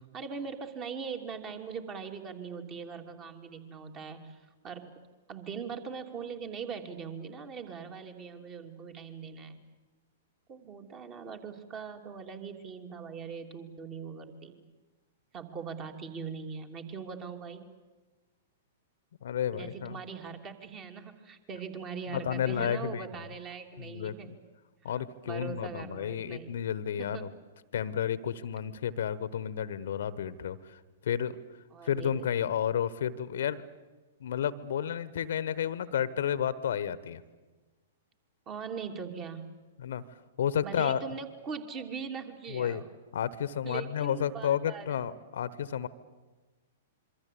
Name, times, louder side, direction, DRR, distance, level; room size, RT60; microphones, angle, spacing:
voice 1, 0.0-4.9 5.3-9.6 10.5-14.5 15.3-17.7 19.5-24.3 24.9-25.0 25.2-26.6 27.0-27.3 31.7-32.3 38.5-39.5 40.6-42.9 43.6-45.0, right 6 dB, 30° right, 5 dB, 3.1 m, -41 dB
voice 2, 19.2-20.0 22.1-23.0 23.8-24.3 24.8-27.3 27.7-30.6 31.0-31.4 31.8-33.6 34.2-37.2 39.8-40.0 40.4-41.0 42.5-42.8 43.1-45.9, left 9 dB, 60° left, 18 dB, 1.1 m, -31 dB
26.5 x 23.5 x 8.5 m, 1.3 s
figure-of-eight pair, 110°, 0 cm